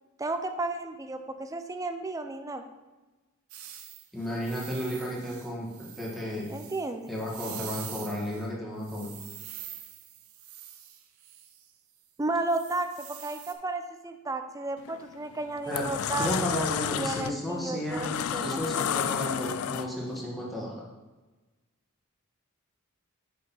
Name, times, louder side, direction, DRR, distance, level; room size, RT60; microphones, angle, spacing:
voice 1, 0.2-2.6 6.5-7.1 12.2-16.6 16.9-18.1 18.3-18.6, right 2 dB, 15° right, 7 dB, 0.5 m, -33 dB
sound 1, 3.5-8.5 8.8-11.7 12.5-13.5, right 10 dB, 90° right, 0.8 m, -45 dB
voice 2, 4.1-6.5 7.1-9.1 15.7-15.9 16.2-18.1 18.4-20.8, equal, ahead, -5 dB, 1.8 m, -33 dB
sound 2, 14.8-15.0 15.5-20.2, left 8 dB, 75° left, 0.4 m, -31 dB
6.5 x 5.4 x 5.5 m, 1.2 s
head